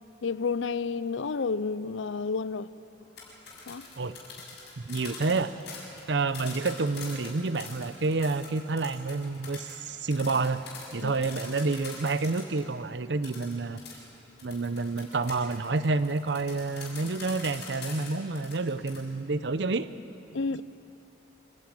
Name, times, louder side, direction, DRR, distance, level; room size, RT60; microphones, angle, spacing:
voice 1, 0.2-2.7 3.7-3.9 11.0-11.1 20.3-20.6, left 4 dB, 80° left, 0.5 m, -30 dB
sound 1, 3.0-12.6 13.2-19.0, left 5 dB, 60° left, 6.5 m, -44 dB
voice 2, 4.8-5.5 6.1-10.6 10.9-13.8 14.4-19.9, right 3 dB, 65° right, 0.7 m, -29 dB
27.0 x 11.0 x 9.1 m
head